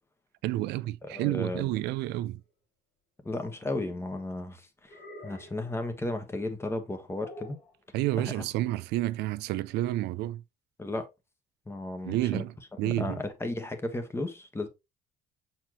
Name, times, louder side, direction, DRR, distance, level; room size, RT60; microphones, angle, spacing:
voice 1, 0.4-2.4 7.9-10.4 12.1-12.5 12.8-13.2, right 15 dB, 85° right, 0.5 m, -30 dB
voice 2, 1.0-1.7 3.2-7.6 8.2-8.4 10.8-11.1 11.7-12.5 12.8-14.7, left 2 dB, 15° left, 1.4 m, -34 dB
sound 1, 3.6-4.1 4.9-5.7 7.2-7.7, left 1 dB, 50° left, 2.3 m, -47 dB
7.3 x 4.4 x 3.1 m
cardioid pair, 110°, 17 cm